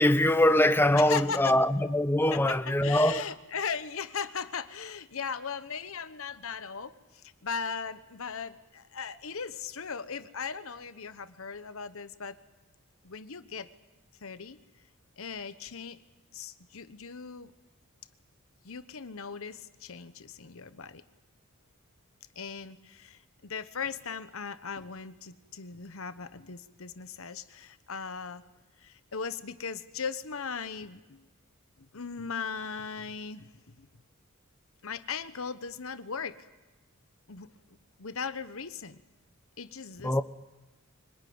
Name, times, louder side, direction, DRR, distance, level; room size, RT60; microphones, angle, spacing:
voice 1, 0.0-3.2 40.0-40.2, left 1 dB, 10° left, 0.7 m, -23 dB
voice 2, 0.9-1.5 2.3-12.4 13.0-13.7 14.2-14.6 15.2-16.0 16.3-17.5 18.6-21.0 22.4-28.4 28.8-31.3 31.8-33.9 34.8-36.5 37.3-39.0 39.6-40.2, left 6 dB, 65° left, 1.1 m, -38 dB
25.0 x 19.5 x 9.5 m
head